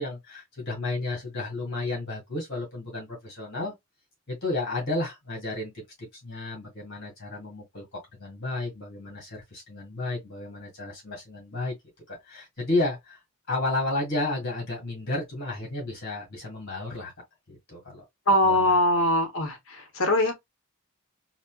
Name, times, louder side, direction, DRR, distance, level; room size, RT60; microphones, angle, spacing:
voice 1, 0.0-3.7 4.3-5.7 6.0-11.7 12.1-13.2 13.5-17.1 17.5-18.0 18.4-19.0, left 2 dB, 50° left, 1.9 m, -32 dB
voice 2, 18.3-19.6 20.0-20.3, left 1 dB, 65° left, 1.0 m, -21 dB
4.1 x 2.1 x 2.2 m
head